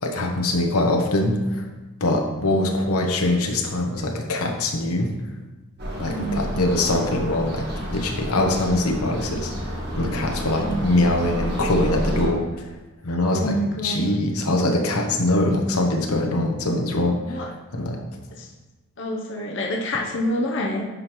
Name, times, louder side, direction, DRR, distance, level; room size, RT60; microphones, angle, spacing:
voice 1, 0.0-1.6 2.0-5.1 6.0-12.7 13.0-13.6 13.8-17.4 17.7-18.0, left 1 dB, 80° left, 2 dB, 1.0 m, -23 dB
sound 1, 5.8-12.3, equal, 50° right, 1.6 m, -30 dB
voice 2, 6.0-6.6 10.5-11.1 13.2-14.2 17.2-17.5 18.4-18.5 19.0-20.8, equal, 55° left, -1 dB, 0.8 m, -27 dB
10.0 x 5.2 x 3.1 m, 1.1 s
head